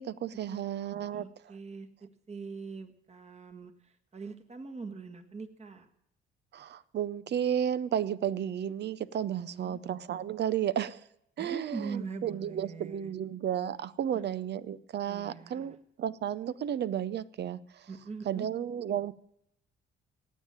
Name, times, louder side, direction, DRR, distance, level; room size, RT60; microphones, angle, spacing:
voice 1, 0.0-1.3 6.5-11.0 11.4-17.6 18.3-19.1, right 9 dB, 60° right, 17 dB, 0.7 m, -33 dB
voice 2, 1.1-3.7 4.1-5.9 9.3-9.8 11.4-13.1 14.1-14.3 15.1-15.8 17.9-18.5, right 4 dB, 35° right, 7 dB, 1.8 m, -42 dB
17.5 x 7.5 x 8.8 m, 0.78 s
cardioid pair, 90°, 20 cm